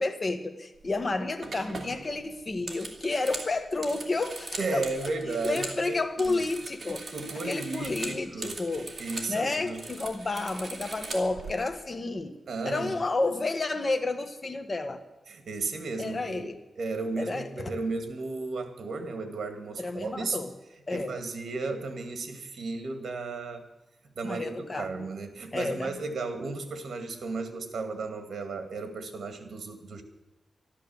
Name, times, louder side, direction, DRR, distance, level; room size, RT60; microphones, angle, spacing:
voice 1, 0.0-4.9 5.4-7.1 7.4-8.9 9.3-12.3 12.6-15.0 16.0-16.6 17.2-17.7 19.8-20.5 20.9-21.1 24.2-25.1 25.5-26.0, left 3 dB, 35° left, 7 dB, 1.6 m, -31 dB
sound 1, 0.8-1.0 1.4-5.8 6.1-9.3 9.6-11.5, right 3 dB, 45° right, 2.7 m, -40 dB
voice 2, 4.6-6.4 7.1-8.6 9.0-9.8 12.5-13.0 15.3-16.5 16.8-20.4 20.9-23.7 24.2-30.0, right 3 dB, 65° right, 7 dB, 2.2 m, -34 dB
13.0 x 12.5 x 7.2 m, 1.1 s
wide cardioid pair, 90°, 0 cm